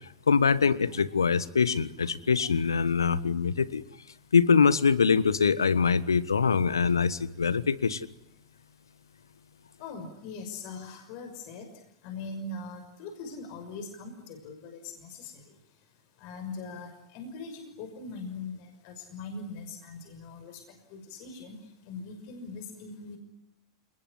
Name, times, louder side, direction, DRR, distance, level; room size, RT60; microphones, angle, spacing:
voice 1, 0.3-3.8 4.3-8.1, left 5 dB, 80° left, 17 dB, 1.3 m, -24 dB
voice 2, 9.8-11.7 12.0-15.4 16.2-20.6 20.9-21.6 21.9-23.2, left 3 dB, 50° left, 6 dB, 5.9 m, -41 dB
29.5 x 20.0 x 9.8 m, 0.82 s
figure-of-eight pair, 90°, 2 cm